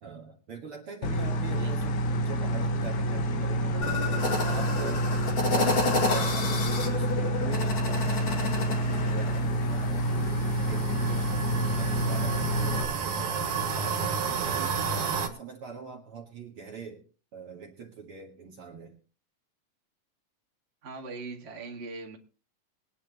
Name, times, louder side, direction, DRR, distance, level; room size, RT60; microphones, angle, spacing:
voice 1, 0.0-3.9 4.2-5.1 5.4-10.4 10.7-13.4 13.6-14.8 15.3-17.0 17.3-18.9, right 5 dB, 50° right, 1 dB, 2.2 m, -43 dB
sound 1, 1.0-12.8, right 1 dB, 75° left, 2.6 m, -28 dB
sound 2, 3.8-9.4, left 3 dB, 45° left, 2.9 m, -30 dB
sound 3, 9.3-15.3, right 5 dB, 90° right, 3.2 m, -32 dB
voice 2, 20.8-22.2, right 3 dB, 25° right, 1 dB, 1.8 m, -40 dB
22.5 x 9.7 x 2.9 m, 0.38 s
omnidirectional pair, 3.5 m